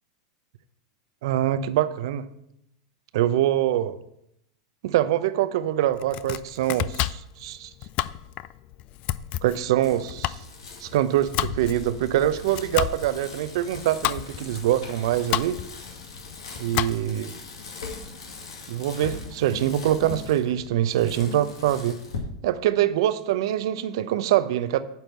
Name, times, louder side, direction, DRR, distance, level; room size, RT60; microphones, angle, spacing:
voice 1, 1.2-2.3 3.1-3.9 4.8-7.7 9.4-10.4 10.8-15.6 16.6-17.3 18.7-22.0 22.4-24.8, right 12 dB, 65° right, 12 dB, 0.6 m, -24 dB
Domestic sounds home sounds, 5.9-17.3, left 15 dB, 45° left, 0.4 m, -32 dB
Bicycle, 9.8-22.2, left 4 dB, 75° left, 2.0 m, -40 dB
9.4 x 4.5 x 6.9 m, 0.79 s
hypercardioid pair, 95°, 3 cm